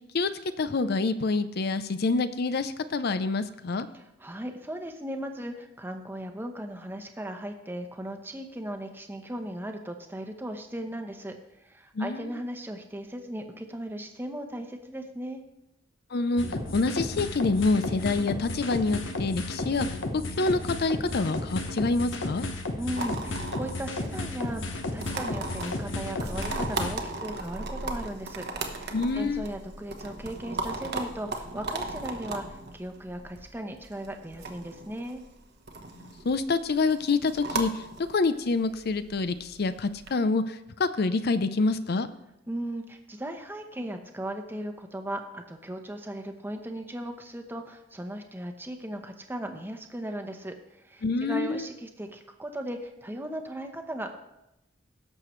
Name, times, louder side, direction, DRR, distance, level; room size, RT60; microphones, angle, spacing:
voice 1, 0.6-3.9 11.9-12.2 16.1-16.4 16.7-19.9 20.1-22.5 28.9-29.5 35.9-37.8 38.1-42.1 51.0-51.7, left 3 dB, 55° left, 12 dB, 0.5 m, -27 dB
voice 2, 3.9-15.4 22.8-35.2 42.5-54.2, right 1 dB, 10° right, 5 dB, 0.9 m, -37 dB
sound 1, 16.4-27.0, left 2 dB, 75° left, 1.1 m, -33 dB
sound 2, 23.0-40.1, right 3 dB, 60° right, 1.1 m, -37 dB
16.5 x 6.7 x 3.2 m, 0.87 s
head